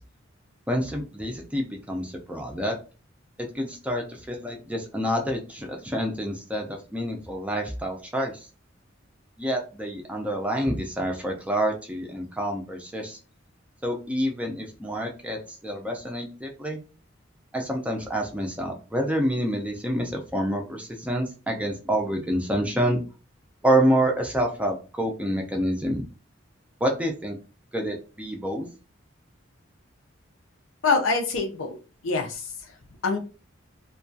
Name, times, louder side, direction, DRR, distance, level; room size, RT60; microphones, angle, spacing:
voice 1, 0.7-2.8 3.4-8.5 9.4-13.2 13.8-16.8 17.5-23.0 23.6-26.0 26.8-27.4 27.7-28.7, right 1 dB, 5° right, 2 dB, 0.4 m, -27 dB
voice 2, 30.8-31.8 32.0-32.5 33.0-33.2, left 4 dB, 90° left, 4 dB, 0.6 m, -24 dB
2.3 x 2.2 x 2.6 m, 0.34 s
head